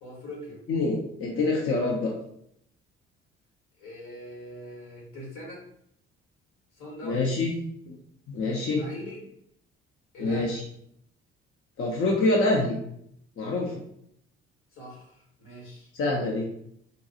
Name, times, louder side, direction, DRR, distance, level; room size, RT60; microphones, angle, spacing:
voice 1, 0.0-0.6 3.8-5.6 6.7-7.4 8.7-9.2 10.1-10.6 14.7-15.9, equal, 70° left, -3 dB, 1.5 m, -41 dB
voice 2, 0.7-2.1 7.0-7.5 7.9-8.0 8.3-8.8 10.2-10.6 11.8-12.8 13.4-13.7 15.9-16.5, left 2 dB, 45° left, -1 dB, 0.6 m, -26 dB
3.7 x 2.3 x 2.7 m, 0.71 s
hypercardioid pair, 50°, 32 cm